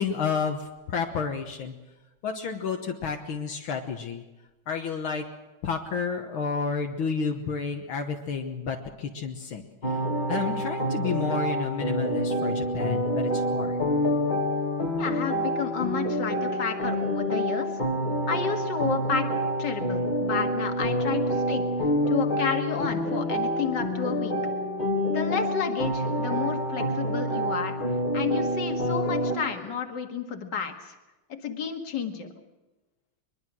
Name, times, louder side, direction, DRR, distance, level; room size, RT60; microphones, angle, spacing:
voice 1, 0.0-1.8 2.2-4.2 4.7-5.3 5.6-10.0 10.3-13.8, left 5 dB, 70° left, 3 dB, 2.0 m, -31 dB
sound 1, 9.8-29.4, equal, 20° left, 1.7 m, -27 dB
voice 2, 15.0-17.7 18.3-19.3 19.6-21.6 22.1-24.4 25.1-27.8 28.1-31.0 31.3-32.3, left 6 dB, 55° left, 5 dB, 2.3 m, -31 dB
22.5 x 22.0 x 6.2 m, 1.1 s
omnidirectional pair, 2.4 m